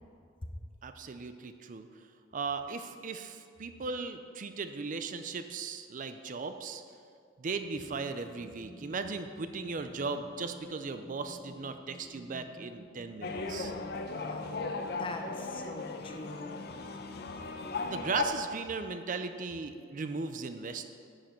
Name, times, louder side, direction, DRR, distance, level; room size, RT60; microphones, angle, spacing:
voice 1, 0.8-1.9 2.3-6.8 7.4-13.7 17.9-20.8, right 4 dB, 45° right, 9 dB, 0.4 m, -37 dB
sound 1, 7.6-14.0, right 1 dB, 5° right, 1.6 m, -52 dB
sound 2, 13.2-18.2, left 4 dB, 55° left, 0.7 m, -37 dB
voice 2, 14.1-16.5, left 2 dB, 30° left, 5 dB, 0.7 m, -43 dB
11.0 x 7.6 x 4.4 m, 2.3 s
head